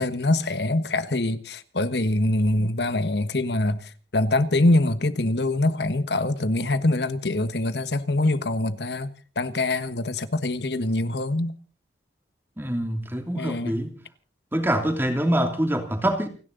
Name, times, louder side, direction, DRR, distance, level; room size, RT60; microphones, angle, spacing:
voice 1, 0.0-11.5 13.3-13.8, left 2 dB, 70° left, 1.4 m, -24 dB
voice 2, 12.6-13.9 14.5-16.3, right 1 dB, 15° right, 2.8 m, -25 dB
29.0 x 11.0 x 4.0 m
head